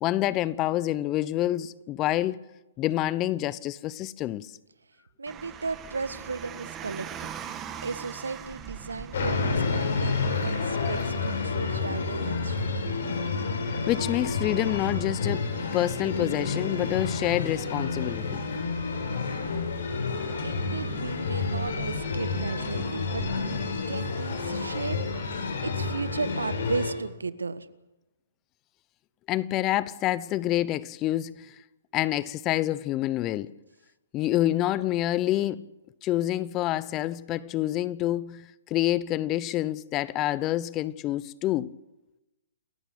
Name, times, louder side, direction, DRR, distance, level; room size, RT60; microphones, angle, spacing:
voice 1, 0.0-2.4 2.8-4.5 13.9-18.4 29.3-31.5 31.9-33.5 34.1-35.7 36.0-41.8, left 14 dB, 25° left, 0.8 m, -27 dB
voice 2, 5.2-7.3 7.8-12.8 20.4-25.0 25.2-27.7, right 4 dB, 85° right, 1.6 m, -35 dB
Car, 5.3-11.1, right 9 dB, 20° right, 2.3 m, -41 dB
sound 1, 9.1-26.9, left 4 dB, 65° left, 7.7 m, -29 dB
29.0 x 15.0 x 8.5 m
hypercardioid pair, 130°, 0 cm